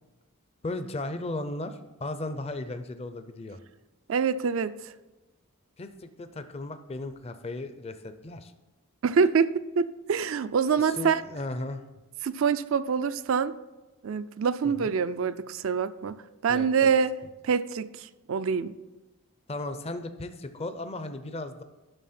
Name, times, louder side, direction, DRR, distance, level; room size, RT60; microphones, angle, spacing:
voice 1, 0.6-3.6 5.8-8.5 10.8-11.8 14.6-14.9 16.5-16.9 19.5-21.6, left 2 dB, 30° left, 9 dB, 0.5 m, -36 dB
voice 2, 4.1-4.7 9.0-11.2 12.2-13.5 14.0-16.2 16.4-17.1 17.4-18.7, right 6 dB, 60° right, 13 dB, 0.4 m, -25 dB
11.0 x 6.1 x 4.3 m, 1.1 s
head